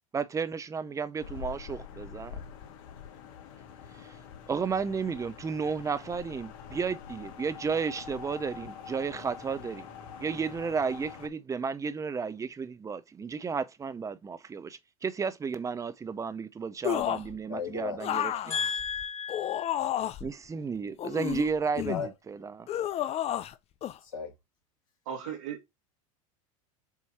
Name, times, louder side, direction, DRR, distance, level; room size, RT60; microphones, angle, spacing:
voice 1, 0.1-2.4 4.0-4.1 4.5-9.9 10.2-18.5 20.2-22.7, right 5 dB, 15° right, 0.7 m, -33 dB
sound 1, 1.2-11.3, left 7 dB, 65° left, 1.5 m, -45 dB
sound 2, 16.8-17.4 18.0-20.3 21.0-22.1 22.7-23.5 23.8-24.0, left 11 dB, 35° left, 0.6 m, -31 dB
voice 2, 17.5-18.0 18.3-19.8 21.9-22.1 24.0-24.3, left 6 dB, 80° left, 2.7 m, -34 dB
voice 3, 25.1-25.8, right 8 dB, 70° right, 2.4 m, -37 dB
7.4 x 3.0 x 4.3 m
hypercardioid pair, 100°, 18 cm